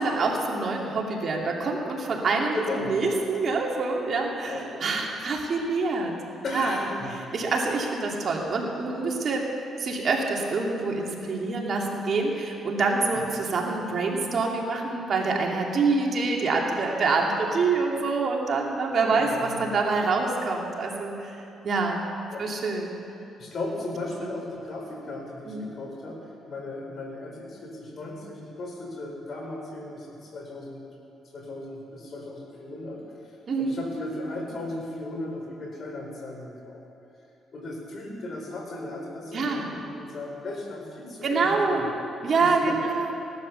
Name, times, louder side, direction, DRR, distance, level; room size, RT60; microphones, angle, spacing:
voice 1, 0.0-2.6 2.9-6.1 6.5-6.8 7.3-9.5 9.8-21.4 21.6-22.1 22.4-22.9 25.5-25.7 33.5-33.7 39.3-39.7 41.2-41.8 42.2-43.1, right 3 dB, 50° right, 0 dB, 2.6 m, -26 dB
voice 2, 2.5-3.0 4.4-5.0 6.4-7.1 13.1-13.2 19.0-19.7 22.3-22.5 23.4-30.9 31.3-33.1 33.6-36.8 37.5-41.9 42.4-42.9, left 2 dB, 50° left, 1 dB, 4.2 m, -36 dB
17.5 x 12.0 x 6.9 m, 2.8 s
cardioid pair, 90°, 0 cm